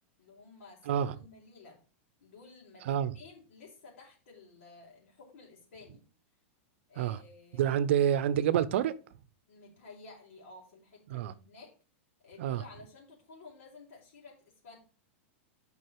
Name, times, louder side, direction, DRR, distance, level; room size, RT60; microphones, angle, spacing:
voice 1, 0.2-1.8 2.2-6.0 6.9-7.8 9.5-11.7 12.2-14.8, left 3 dB, 75° left, 4.0 m, -53 dB
voice 2, 7.6-8.9 11.1-11.3 12.4-12.6, right 10 dB, 65° right, 0.7 m, -27 dB
7.8 x 5.4 x 4.8 m
supercardioid pair, 160°, 7 cm